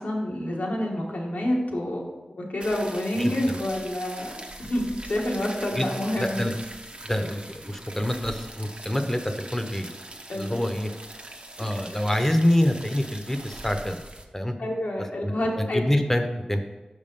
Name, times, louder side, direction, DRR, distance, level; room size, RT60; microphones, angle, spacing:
voice 1, 0.0-2.0 2.4-6.4 10.3-10.6 14.6-15.8, left 1 dB, 85° left, -2 dB, 1.5 m, -28 dB
sound 1, 2.6-14.2, right 1 dB, 45° right, 0.9 m, -42 dB
voice 2, 3.2-3.6 5.8-5.9 6.2-6.5 7.0-9.9 10.4-10.9 11.6-14.0 14.3-14.6 15.2-16.2 16.5-16.6, left 1 dB, 15° left, 5 dB, 0.8 m, -26 dB
6.1 x 5.3 x 5.4 m, 1.2 s
wide cardioid pair, 50°, 3 cm